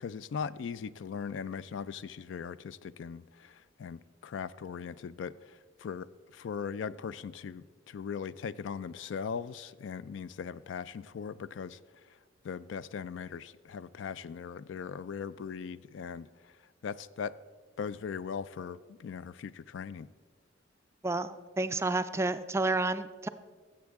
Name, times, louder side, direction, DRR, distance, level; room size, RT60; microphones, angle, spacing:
voice 1, 0.0-6.1 6.3-11.8 12.4-16.5 16.8-17.4 17.8-20.1, left 6 dB, 75° left, 17 dB, 0.3 m, -39 dB
voice 2, 21.0-23.3, right 2 dB, 15° right, 12 dB, 0.3 m, -30 dB
16.0 x 7.5 x 3.5 m, 1.5 s
head